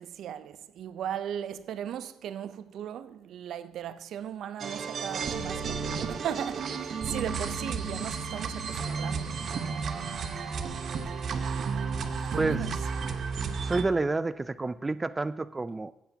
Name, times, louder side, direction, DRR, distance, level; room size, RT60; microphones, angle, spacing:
voice 1, 0.0-9.4 10.9-12.0 12.3-12.8, right 9 dB, 75° right, 0.6 m, -38 dB
sound 1, 4.6-13.8, right 5 dB, 60° right, 1.0 m, -32 dB
voice 2, 13.6-15.9, right 3 dB, 20° right, 0.3 m, -29 dB
16.0 x 7.9 x 2.8 m
cardioid pair, 90°, 0 cm